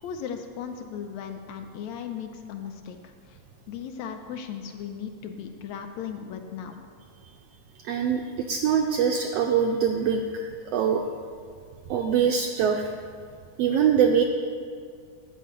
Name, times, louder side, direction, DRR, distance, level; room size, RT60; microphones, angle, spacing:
voice 1, 0.0-3.4 3.7-6.8, left 8 dB, 75° left, 5 dB, 1.8 m, -37 dB
voice 2, 7.8-11.0 11.9-12.9 13.6-14.2, right 7 dB, 90° right, 2 dB, 1.4 m, -23 dB
11.0 x 5.5 x 8.2 m, 2.1 s
omnidirectional pair, 3.4 m